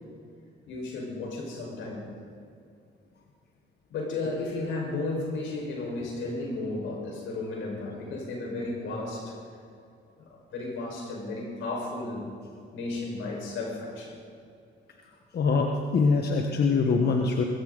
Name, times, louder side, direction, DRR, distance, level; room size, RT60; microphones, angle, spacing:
voice 1, 0.7-2.1 3.9-9.4 10.2-12.3 12.7-14.2, left 2 dB, 85° left, 0 dB, 5.0 m, -34 dB
voice 2, 15.3-17.4, left 4 dB, 55° left, 2 dB, 1.4 m, -23 dB
21.0 x 16.5 x 4.0 m, 2.5 s
cardioid pair, 90°, 20 cm